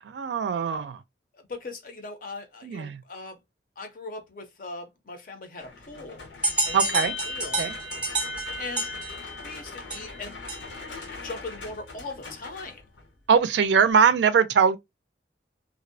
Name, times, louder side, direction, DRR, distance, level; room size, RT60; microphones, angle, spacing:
voice 1, 0.0-1.0 2.6-3.0 6.7-7.1 7.6-7.7 13.3-14.8, right 6 dB, 70° right, 0.3 m, -21 dB
voice 2, 1.3-3.4 3.8-6.3 6.6-7.6 8.6-8.8 9.1-10.4 11.2-12.8, left 3 dB, 50° left, 0.5 m, -40 dB
sound 1, 5.6-13.2, left 3 dB, 90° left, 0.9 m, -43 dB
sound 2, 6.4-10.9, right 1 dB, 5° right, 0.5 m, -30 dB
2.5 x 2.0 x 2.6 m
head